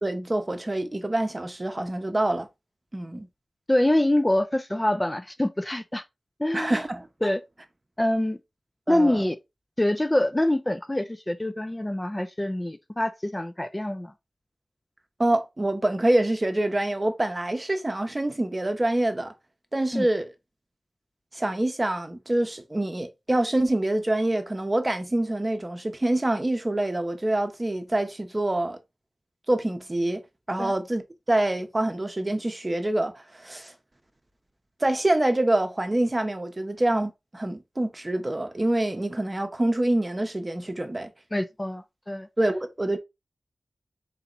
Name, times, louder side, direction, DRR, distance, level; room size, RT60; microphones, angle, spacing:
voice 1, 0.0-2.5 2.9-3.3 6.5-7.3 8.9-9.3 15.2-19.3 19.7-20.3 21.3-28.8 29.5-30.2 30.5-33.7 34.8-41.1 42.4-43.0, right 1 dB, 30° right, 0.8 m, -26 dB
voice 2, 3.7-6.0 6.4-6.8 7.2-7.4 8.0-8.4 8.9-9.4 9.8-14.1 19.9-20.1 30.6-30.7 41.3-42.3, left 1 dB, 20° left, 0.5 m, -25 dB
4.1 x 2.9 x 3.8 m
wide cardioid pair, 65°, 0 cm